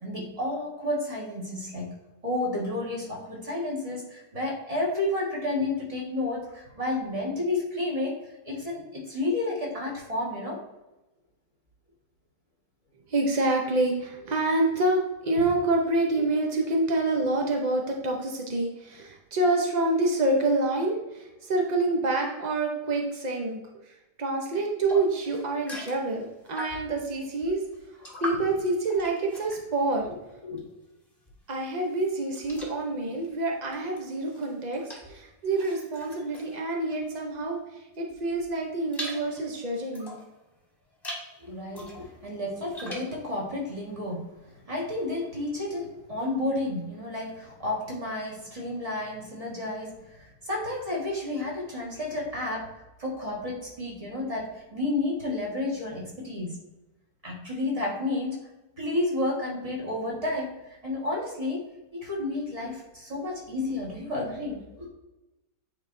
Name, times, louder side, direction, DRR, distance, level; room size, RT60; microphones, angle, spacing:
voice 1, 0.0-2.0 2.2-10.6 15.4-15.5 28.0-28.4 30.4-30.6 41.4-44.4 44.7-52.7 53.0-56.6 57.2-58.4 58.8-61.6 61.9-64.9, left 2 dB, 20° right, -3 dB, 1.5 m, -31 dB
voice 2, 13.1-27.6 28.2-30.0 31.5-40.2 64.4-64.5, right 2 dB, 75° right, 1 dB, 0.4 m, -27 dB
sound 1, 24.9-27.0 27.4-30.8 31.2-37.5 37.9-40.3 40.8-41.3 41.7-43.2, equal, 15° left, 1.6 m, -42 dB
8.9 x 4.1 x 2.6 m, 1.0 s
omnidirectional pair, 1.9 m